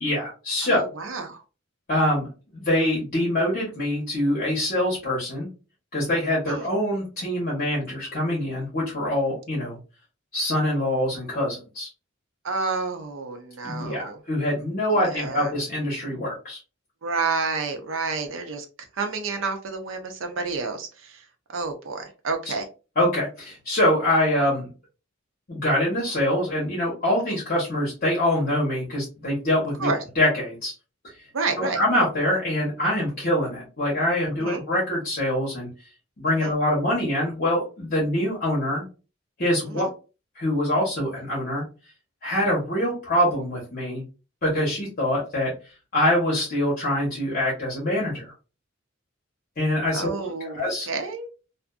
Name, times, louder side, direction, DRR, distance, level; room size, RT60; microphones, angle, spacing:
voice 1, 0.0-0.8 1.9-5.5 5.9-9.8 10.3-11.9 13.6-16.6 23.0-24.7 25.5-29.9 30.2-30.7 31.6-35.7 36.2-38.8 39.4-39.8 40.4-41.6 42.2-44.0 44.4-45.5 45.9-48.3 49.6-50.9, left 1 dB, 50° left, 1.0 m, -24 dB
voice 2, 0.6-1.4 6.5-6.7 12.4-14.2 14.9-15.5 17.0-18.7 18.9-21.2 21.5-22.7 27.3-27.4 29.8-30.0 31.3-31.8 34.4-34.6 36.3-36.5 39.7-39.9 49.9-51.3, right 4 dB, 80° right, 0.6 m, -30 dB
2.5 x 2.5 x 2.3 m
head